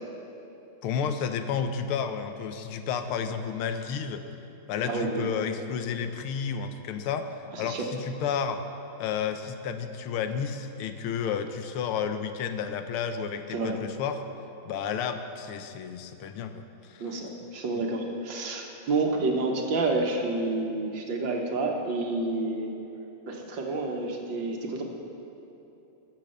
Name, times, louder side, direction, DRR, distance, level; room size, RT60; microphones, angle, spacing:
voice 1, 0.8-4.2 4.7-8.6 9.0-14.2 14.7-17.0, left 7 dB, 85° left, 8 dB, 1.6 m, -31 dB
voice 2, 4.8-5.3 7.5-7.9 13.5-13.8 17.0-22.7 23.3-24.8, right 3 dB, 65° right, 1 dB, 1.8 m, -29 dB
13.5 x 7.6 x 6.5 m, 3.0 s
omnidirectional pair, 2.3 m